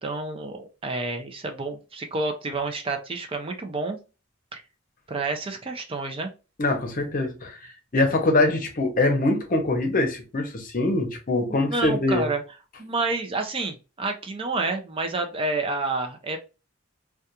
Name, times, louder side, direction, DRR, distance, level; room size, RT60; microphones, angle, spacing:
voice 1, 0.0-4.0 4.5-4.6 5.1-6.3 11.5-12.4 12.8-16.4, right 3 dB, 30° right, 0.4 m, -29 dB
voice 2, 6.6-7.6 7.9-12.3, left 2 dB, 45° left, 0.7 m, -23 dB
2.4 x 2.2 x 2.7 m
head